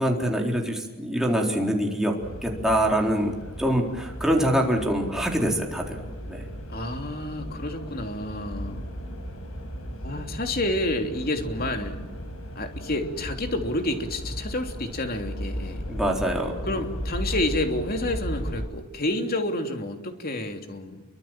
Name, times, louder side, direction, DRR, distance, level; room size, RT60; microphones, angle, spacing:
voice 1, 0.0-2.1 2.4-6.0 6.3-6.5 15.9-16.8, equal, ahead, 0 dB, 4.0 m, -25 dB
sound 1, 2.2-18.7, equal, 80° left, 5.6 m, -36 dB
voice 2, 6.7-8.8 10.0-12.0 12.5-15.8 16.7-21.0, left 1 dB, 45° left, 4 dB, 3.1 m, -29 dB
29.0 x 24.0 x 7.5 m, 1.1 s
head